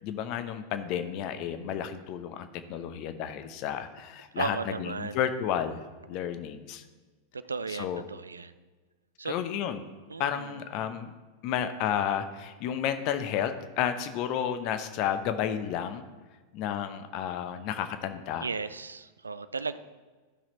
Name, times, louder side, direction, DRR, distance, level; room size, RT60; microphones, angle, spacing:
voice 1, 0.0-5.8 6.1-6.8 7.7-8.0 9.3-9.8 10.2-11.1 11.4-16.1 16.5-18.5, left 9 dB, 40° left, 9 dB, 0.8 m, -32 dB
voice 2, 4.4-5.2 7.3-8.5 9.2-9.4 10.1-10.6 18.4-19.8, right 4 dB, 75° right, 13 dB, 0.4 m, -35 dB
13.0 x 5.9 x 4.3 m, 1.3 s
figure-of-eight pair, 90°, 0 cm